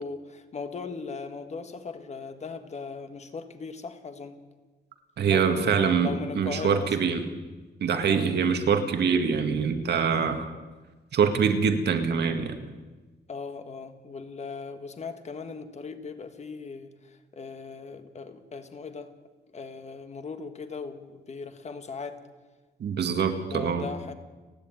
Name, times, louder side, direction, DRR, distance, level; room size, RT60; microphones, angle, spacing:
voice 1, 0.0-4.4 5.2-6.9 8.0-8.4 13.3-19.1 19.5-22.2 23.4-24.1, left 4 dB, 40° left, 8 dB, 1.5 m, -38 dB
voice 2, 5.2-7.2 7.8-10.5 11.1-12.6 22.8-23.8, right 6 dB, 65° right, 7 dB, 2.0 m, -24 dB
30.0 x 10.5 x 9.0 m, 1.3 s
wide cardioid pair, 175°, 18 cm